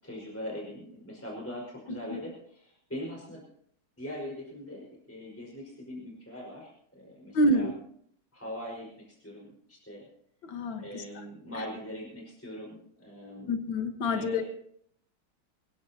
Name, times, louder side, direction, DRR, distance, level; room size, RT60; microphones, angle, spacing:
voice 1, 0.0-3.4 4.0-7.7 8.3-10.1 10.8-13.6 14.0-14.4, equal, 5° left, -3 dB, 5.1 m, -41 dB
voice 2, 1.9-2.2 7.3-7.7 10.4-11.2 13.5-14.4, left 1 dB, 65° left, 6 dB, 2.2 m, -28 dB
24.5 x 16.5 x 2.9 m, 0.66 s
omnidirectional pair, 2.3 m